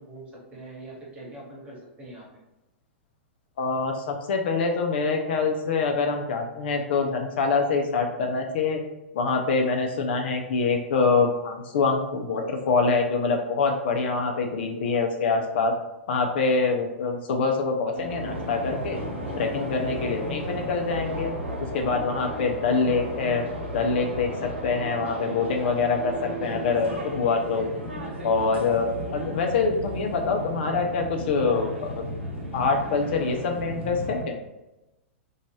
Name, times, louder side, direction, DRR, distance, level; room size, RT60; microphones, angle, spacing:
voice 1, 0.0-2.3, right 2 dB, 20° right, -5 dB, 1.2 m, -43 dB
voice 2, 3.6-8.8 9.1-15.7 16.1-19.0 19.4-21.3 21.7-23.4 23.7-27.7 28.2-32.0 32.5-34.4, left 4 dB, 55° left, 3 dB, 0.4 m, -25 dB
sound 1, 17.9-34.2, equal, 80° right, 0.8 m, -34 dB
2.5 x 2.3 x 3.0 m, 0.97 s
figure-of-eight pair, 100°, 7 cm